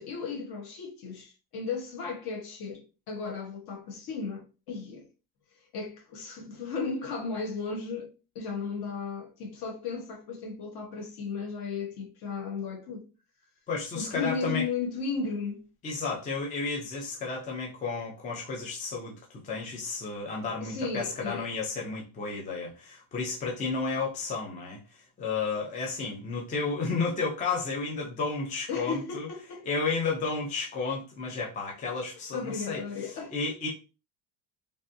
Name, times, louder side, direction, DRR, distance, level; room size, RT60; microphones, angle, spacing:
voice 1, 0.0-5.1 5.7-8.1 8.3-13.0 13.9-15.6 20.6-21.5 28.7-29.7 32.3-33.3, left 4 dB, 55° left, 1.2 m, -35 dB
voice 2, 13.7-14.7 15.8-19.1 19.4-24.8 25.2-29.3 29.6-32.8 33.3-33.7, left 4 dB, 20° left, 0.4 m, -32 dB
3.3 x 2.5 x 2.6 m
cardioid pair, 180°, 44 cm